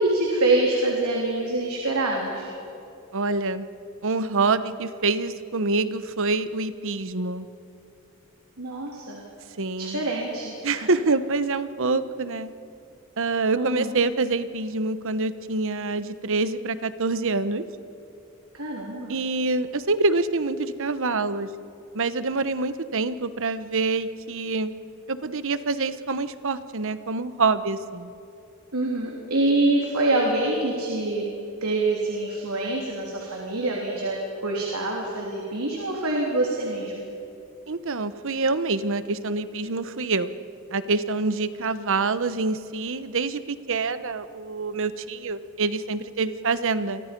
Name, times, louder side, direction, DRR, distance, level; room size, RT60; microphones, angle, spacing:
voice 1, 0.0-2.5 8.6-9.2 9.8-10.9 13.6-13.9 18.5-19.1 28.7-31.3 31.6-37.0, right 2 dB, 80° right, -1 dB, 3.4 m, -25 dB
voice 2, 3.1-3.7 4.0-7.5 9.6-10.0 10.6-12.5 13.2-17.6 19.1-21.5 21.9-24.7 25.1-28.1 37.7-40.3 40.7-47.0, right 3 dB, 65° right, 12 dB, 1.0 m, -26 dB
30.0 x 24.5 x 5.4 m, 2.7 s
head